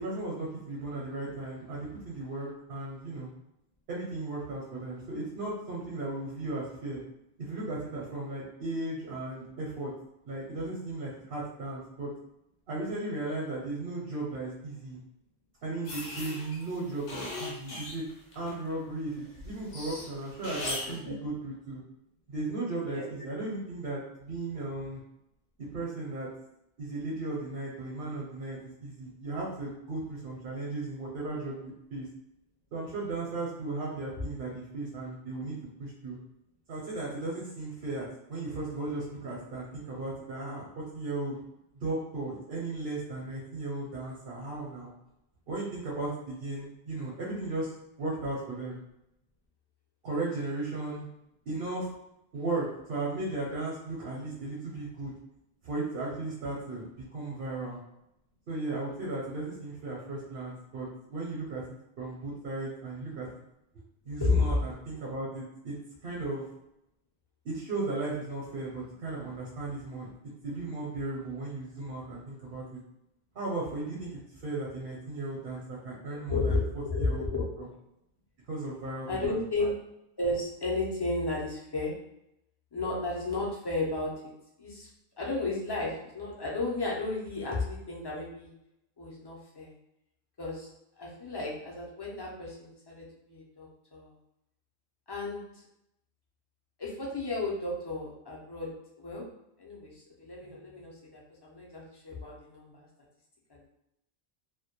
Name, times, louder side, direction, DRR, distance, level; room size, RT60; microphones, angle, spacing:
voice 1, 0.0-3.3 3.9-7.0 7.4-9.9 10.2-12.1 12.7-15.0 15.6-18.1 18.3-21.8 22.3-25.0 25.7-26.3 26.8-32.1 32.7-36.2 36.7-41.4 41.7-44.9 45.5-47.7 48.0-48.8 50.0-51.1 51.5-51.9 52.3-55.1 55.6-57.8 58.5-61.6 62.0-63.3 64.0-65.8 66.0-66.5 67.4-70.1 70.4-72.8 73.3-76.6 77.0-77.2 78.5-79.4, right 2 dB, 65° right, -4 dB, 0.8 m, -36 dB
sound 1, 15.9-18.8 19.1-21.0, left 2 dB, 55° left, 0.7 m, -39 dB
voice 2, 76.3-77.6 79.1-79.7 80.2-81.9 82.7-84.1 84.6-84.9 85.2-88.5 89.0-89.7 90.4-90.7 91.0-94.1 95.1-95.6 96.8-98.7 99.0-99.2 99.6-102.9 103.5-103.6, left 2 dB, 40° left, -4 dB, 0.3 m, -33 dB
2.1 x 2.1 x 2.8 m, 0.82 s
omnidirectional pair, 1.1 m